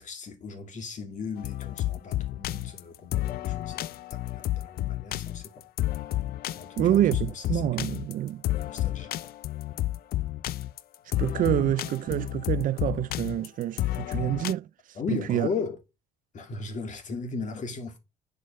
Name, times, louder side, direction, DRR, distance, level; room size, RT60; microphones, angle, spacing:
voice 1, 0.0-5.6 6.5-8.1 8.5-9.1 14.9-15.8 16.3-18.0, left 5 dB, 45° left, 2.5 m, -37 dB
sound 1, 1.4-14.5, left 14 dB, 65° left, 0.5 m, -31 dB
voice 2, 6.8-8.4 11.2-14.7 15.1-15.5, right 12 dB, 55° right, 0.4 m, -27 dB
9.5 x 5.5 x 5.5 m
cardioid pair, 110°, 17 cm